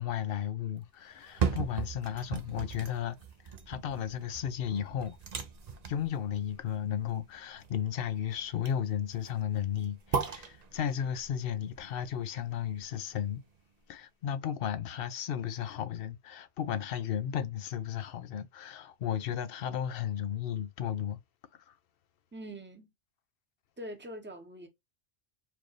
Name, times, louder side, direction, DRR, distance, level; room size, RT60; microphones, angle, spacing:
voice 1, 0.0-3.2 3.7-5.2 5.9-13.4 13.9-21.2 21.5-21.7, left 9 dB, 65° left, 0.7 m, -34 dB
sound 1, 1.1-13.2 13.6-13.7, right 6 dB, 45° right, 0.6 m, -38 dB
voice 2, 22.3-22.9 23.8-24.7, equal, 10° right, 0.8 m, -43 dB
4.4 x 2.6 x 3.1 m
omnidirectional pair, 1.1 m